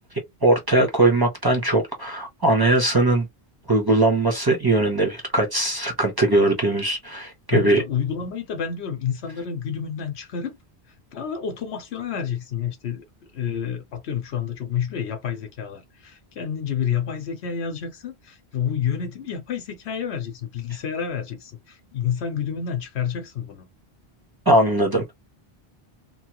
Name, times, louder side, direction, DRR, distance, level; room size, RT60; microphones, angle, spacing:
voice 1, 0.4-3.3 3.7-7.8 24.5-25.1, right 2 dB, 25° right, 0.7 m, -20 dB
voice 2, 7.5-10.6 11.1-13.0 13.3-23.7, left 8 dB, 85° left, 1.1 m, -29 dB
3.0 x 2.1 x 2.9 m
omnidirectional pair, 1.1 m